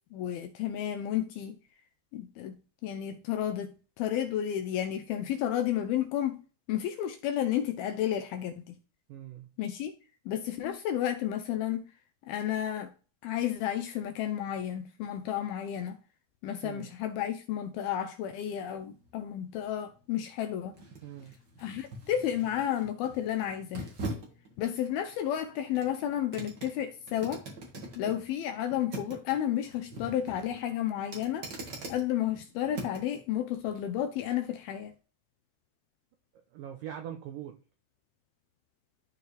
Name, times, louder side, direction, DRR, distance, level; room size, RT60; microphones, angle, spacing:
voice 1, 0.1-1.6 2.1-2.6 2.8-6.4 6.7-8.8 9.6-9.9 10.3-11.8 12.3-12.9 13.2-16.0 16.4-20.7 21.6-23.9 24.6-27.4 28.0-31.5 31.9-34.9, left 11 dB, 80° left, 2.3 m, -32 dB
voice 2, 9.1-9.5 16.6-16.9 21.0-21.3 36.5-37.6, right 10 dB, 90° right, 1.9 m, -42 dB
sound 1, 18.5-33.2 33.6-33.8, right 2 dB, 70° right, 1.0 m, -44 dB
13.0 x 4.5 x 3.3 m
omnidirectional pair, 5.0 m